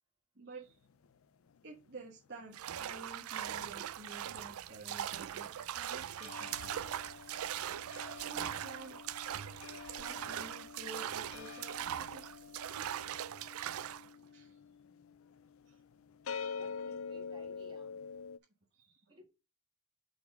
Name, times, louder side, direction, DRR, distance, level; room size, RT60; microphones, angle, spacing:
voice 1, 0.3-0.8 1.6-6.7 8.1-9.0 10.0-12.3 14.3-14.6 15.6-15.8 16.3-16.6 18.7-19.1, right 3 dB, 50° right, 1.3 m, -51 dB
sound 1, 0.7-3.3 3.6-18.4, left 6 dB, 75° left, 0.4 m, -47 dB
sound 2, 2.5-14.1, right 10 dB, 85° right, 0.4 m, -41 dB
sound 3, 6.4-7.6 8.3-8.5 9.2-9.7 10.1-11.0 11.3-11.9, left 3 dB, 45° left, 1.7 m, -63 dB
voice 2, 16.4-18.0 19.1-19.2, left 1 dB, 25° right, 2.0 m, -59 dB
5.9 x 4.2 x 6.1 m
head